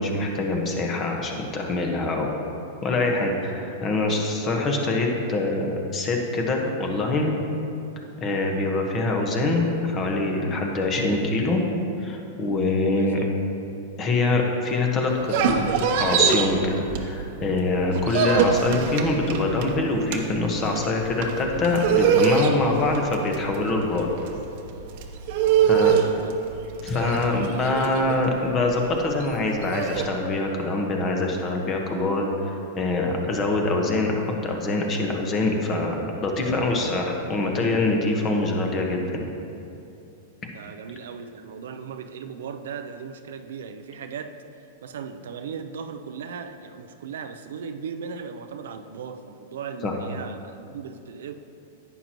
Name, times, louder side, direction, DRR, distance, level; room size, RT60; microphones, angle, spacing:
voice 1, 0.0-2.3 2.8-7.3 8.2-11.6 12.0-13.2 14.0-15.6 16.0-24.1 25.6-25.9 26.8-36.0 36.2-39.2 49.8-49.9, left 2 dB, 30° left, 1 dB, 1.3 m, -24 dB
voice 2, 12.9-13.3 25.4-26.5 40.5-44.4 44.8-51.3, right 6 dB, 80° right, 8 dB, 0.5 m, -37 dB
sound 1, 15.1-17.4 17.7-30.1, right 7 dB, 60° right, 0.9 m, -24 dB
11.0 x 9.1 x 3.1 m, 2.7 s
hypercardioid pair, 130°, 0 cm